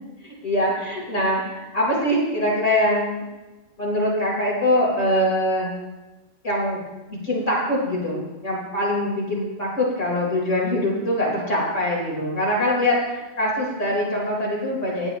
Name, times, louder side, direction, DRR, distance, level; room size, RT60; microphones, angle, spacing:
voice 1, 0.2-3.2 3.8-5.7 6.4-6.8 7.1-15.1, left 1 dB, 85° left, -5 dB, 4.6 m, -23 dB
16.5 x 10.5 x 3.1 m, 1.1 s
omnidirectional pair, 1.2 m